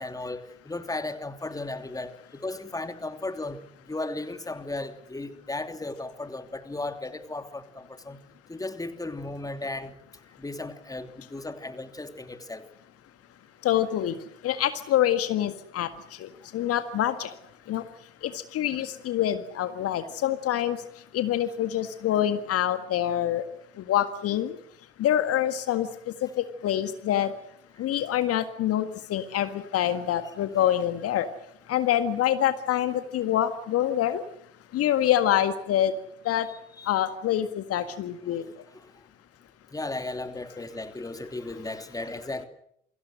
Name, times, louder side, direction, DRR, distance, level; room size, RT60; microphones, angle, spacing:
voice 1, 0.0-3.6 3.9-8.2 8.5-10.0 10.4-12.7 36.5-36.9 38.7-38.9 39.7-42.5, left 2 dB, 10° left, 2.8 m, -35 dB
voice 2, 13.6-17.4 17.7-23.4 23.7-24.6 25.0-27.3 27.8-31.3 31.7-34.2 34.7-35.9 36.2-36.5 36.8-38.4, left 11 dB, 45° left, 1.8 m, -26 dB
28.5 x 24.5 x 6.4 m
figure-of-eight pair, 55°, 32 cm